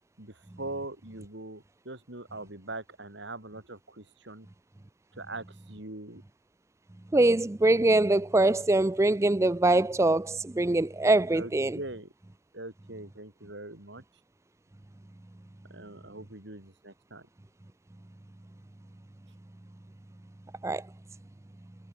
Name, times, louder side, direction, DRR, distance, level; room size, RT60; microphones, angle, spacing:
voice 1, 0.2-4.5 5.1-6.2 11.3-12.1 12.5-14.0 15.7-17.3, right 2 dB, 60° right, 3.3 m, -42 dB
voice 2, 7.1-11.8 20.6-20.8, right 2 dB, 15° right, 0.4 m, -23 dB
head